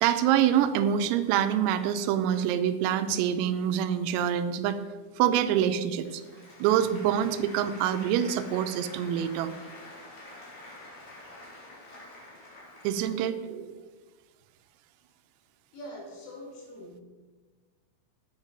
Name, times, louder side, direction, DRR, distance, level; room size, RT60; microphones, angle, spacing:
voice 1, 0.0-4.8 5.2-6.2 6.6-9.5 12.8-13.8, right 10 dB, 90° right, 8 dB, 3.3 m, -26 dB
Applause, 6.0-13.4, left 2 dB, 40° left, 3.0 m, -47 dB
voice 2, 15.7-17.0, equal, 75° left, -3 dB, 5.2 m, -43 dB
10.0 x 8.1 x 5.3 m, 1.3 s
omnidirectional pair, 5.9 m